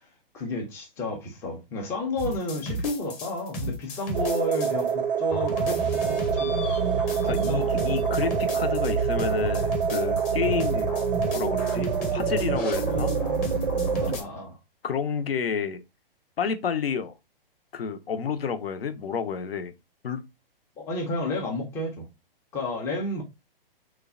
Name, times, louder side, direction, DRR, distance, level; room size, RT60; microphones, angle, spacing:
voice 1, 0.3-6.6 7.3-8.0 12.8-13.6 14.0-14.6 20.8-22.1 22.5-23.2, left 2 dB, 10° left, 0.3 m, -32 dB
sound 1, 2.2-4.9 5.3-14.2, right 2 dB, 25° left, 0.7 m, -31 dB
sound 2, 4.1-14.2, right 7 dB, 65° right, 0.5 m, -27 dB
voice 2, 7.3-11.0 11.3-13.1 14.1-14.2 14.8-15.8 16.4-17.1 17.7-19.7 20.0-20.2, left 6 dB, 80° left, 0.5 m, -30 dB
3.2 x 2.1 x 2.3 m
hypercardioid pair, 125°, 29 cm